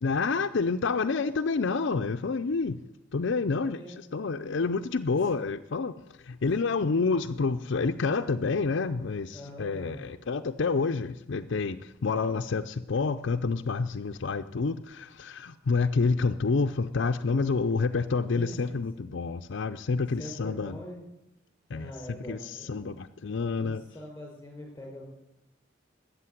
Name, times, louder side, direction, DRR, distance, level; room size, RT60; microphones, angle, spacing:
voice 1, 0.0-2.8 3.1-3.8 4.1-5.9 6.2-20.8 21.7-23.8, left 4 dB, 65° left, 7 dB, 0.5 m, -28 dB
voice 2, 3.5-4.0 5.2-5.3 6.4-6.5 9.3-10.0 18.4-19.0 20.2-21.0 21.7-22.9 23.6-25.0, equal, 10° left, 0 dB, 5.7 m, -43 dB
13.5 x 8.3 x 9.9 m, 0.88 s
head